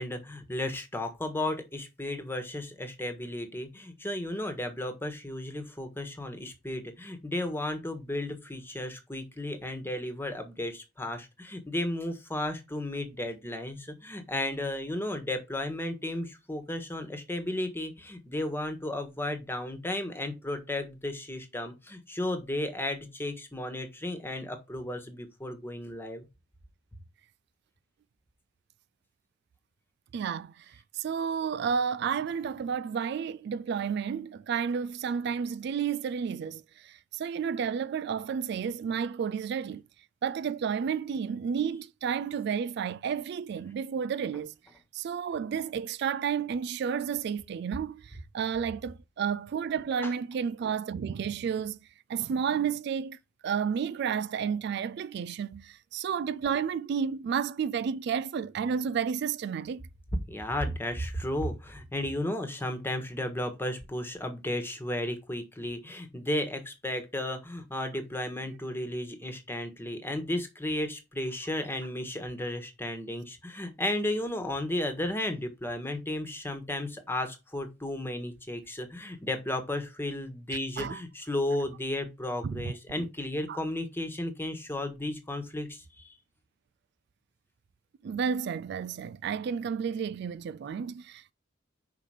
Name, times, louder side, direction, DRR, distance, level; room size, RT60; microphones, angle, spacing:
voice 1, 0.0-26.2 50.0-50.1 60.3-86.1, left 1 dB, 10° left, 1.4 m, -34 dB
voice 2, 30.1-39.8 40.2-44.5 44.9-51.8 52.1-53.2 53.4-59.8 80.8-81.0 82.4-82.7 83.5-83.6 88.0-91.3, right 7 dB, 60° right, 0.3 m, -31 dB
5.8 x 4.9 x 4.9 m
head